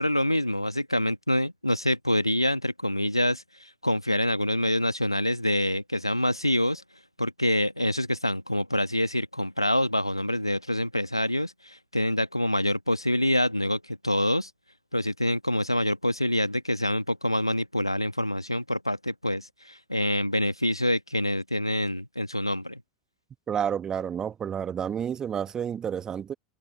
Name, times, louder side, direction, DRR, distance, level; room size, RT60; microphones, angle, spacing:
voice 1, 0.0-6.8 7.2-14.5 14.9-22.8, left 1 dB, 90° left, 1.5 m, -26 dB
voice 2, 23.5-26.3, right 8 dB, 25° right, 1.2 m, -30 dB
figure-of-eight pair, 80°, 3 cm